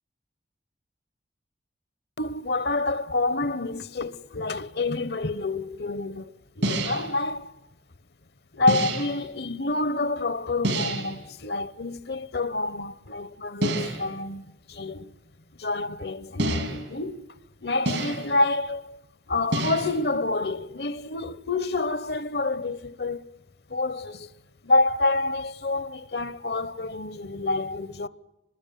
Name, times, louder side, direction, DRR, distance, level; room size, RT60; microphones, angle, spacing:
voice 1, 2.2-7.5 8.5-15.1 15.6-19.0 19.3-23.3 23.7-24.3 24.6-28.1, left 2 dB, 60° left, 0.9 m, -28 dB
sound 1, 6.6-7.2 8.7-9.2 10.6-11.2 13.6-14.2 16.4-17.0 17.8-18.4 19.5-20.1, right 1 dB, 90° right, 4.0 m, -28 dB
25.5 x 20.0 x 9.3 m
head